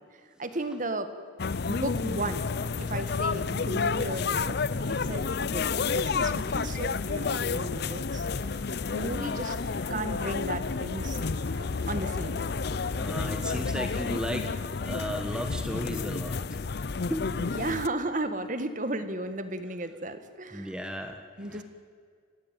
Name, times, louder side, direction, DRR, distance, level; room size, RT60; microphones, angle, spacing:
voice 1, 0.4-1.1 1.7-2.4 2.8-4.6 4.9-8.3 8.9-9.6 9.9-11.2 11.9-12.4 17.5-20.8 21.4-21.6, right 1 dB, 40° right, 10 dB, 1.7 m, -34 dB
sound 1, 1.4-17.9, left 4 dB, 55° left, 0.6 m, -30 dB
sound 2, 4.7-14.2, right 1 dB, 55° right, 4.7 m, -51 dB
voice 2, 8.9-9.4 12.9-14.5 14.8-16.6 17.1-17.6 20.5-21.2 21.5-21.6, equal, 5° right, 5 dB, 1.4 m, -35 dB
29.5 x 16.0 x 9.2 m, 2.1 s
head